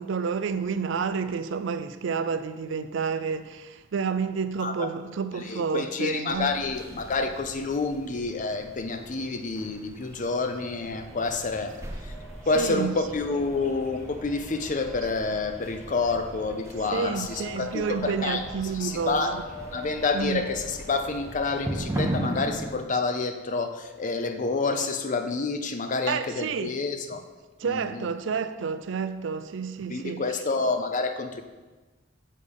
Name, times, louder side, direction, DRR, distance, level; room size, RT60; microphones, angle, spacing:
voice 1, 0.0-6.5 12.5-12.9 16.9-19.4 20.1-20.4 26.1-26.7 27.6-30.2, right 6 dB, 70° right, 0.4 m, -29 dB
voice 2, 5.3-11.8 12.0-12.1 12.5-18.4 18.7-19.4 19.7-27.2 27.6-28.1 29.9-31.4, left 3 dB, 40° left, 0.6 m, -28 dB
sound 1, 6.3-22.8, right 1 dB, 15° right, 0.5 m, -39 dB
sound 2, 10.8-22.0, equal, 5° left, 1.5 m, -44 dB
6.6 x 5.4 x 5.2 m
head